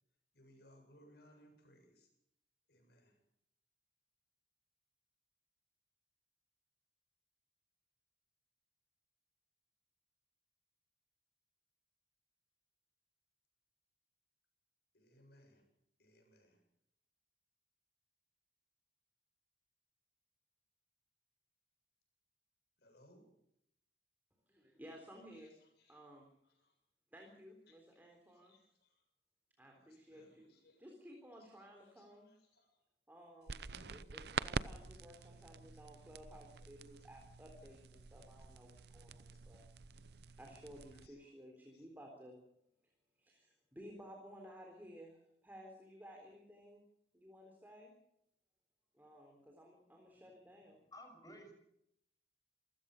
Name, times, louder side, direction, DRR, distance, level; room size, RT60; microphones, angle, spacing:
voice 1, 0.3-2.1 2.7-3.2 14.9-15.6 16.0-16.6 22.8-23.3 25.2-26.0 26.4-26.7 27.7-28.0 28.2-29.0 29.7-31.0 31.3-32.7 33.4-34.1 34.9-36.1 36.3-36.4 36.8-37.1 37.6-37.8 38.2-38.3 38.7-39.0 39.3-39.4 40.0-40.2 40.9-41.3 41.7-41.9, equal, 60° left, 4 dB, 7.8 m, -67 dB
voice 2, 24.5-25.5 25.9-26.3 27.1-28.5 29.6-30.5 30.8-32.3 33.1-33.6 33.9-39.7 40.4-42.4 43.2-46.8 47.1-47.9 48.9-50.8, equal, 10° right, 1 dB, 3.7 m, -56 dB
sound 1, 33.5-41.1, right 5 dB, 60° right, 0.7 m, -46 dB
voice 3, 50.9-51.5, equal, 20° left, 5 dB, 6.1 m, -53 dB
27.0 x 16.0 x 6.6 m, 0.76 s
head